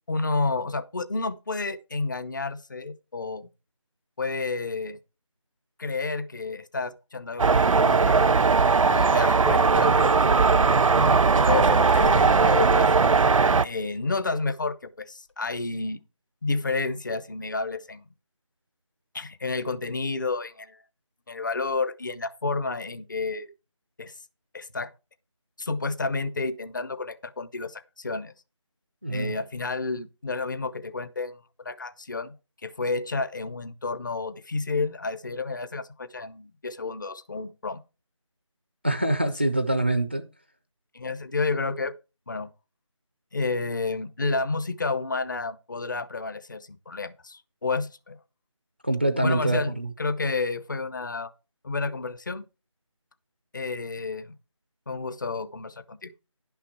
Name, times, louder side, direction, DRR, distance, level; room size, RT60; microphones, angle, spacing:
voice 1, 0.1-3.5 4.2-5.0 5.8-8.4 8.9-10.9 11.3-12.9 13.6-16.0 16.4-18.0 19.1-20.8 21.3-23.5 24.0-24.1 24.5-24.9 25.6-28.3 29.1-31.4 31.6-32.3 32.6-37.8 40.9-41.9 42.3-42.5 43.3-48.2 49.2-49.7 50.0-51.3 51.6-52.5 53.5-54.3 54.9-56.1, left 3 dB, 35° left, 0.8 m, -30 dB
sound 1, 7.4-13.7, right 4 dB, 85° right, 0.5 m, -19 dB
sound 2, 11.6-13.3 13.6-13.7 15.3-15.4, left 2 dB, 70° left, 2.7 m, -38 dB
voice 2, 29.0-29.3 38.8-40.3 48.8-49.9, right 1 dB, 20° right, 0.4 m, -25 dB
11.0 x 5.8 x 4.5 m
figure-of-eight pair, 170°, 17 cm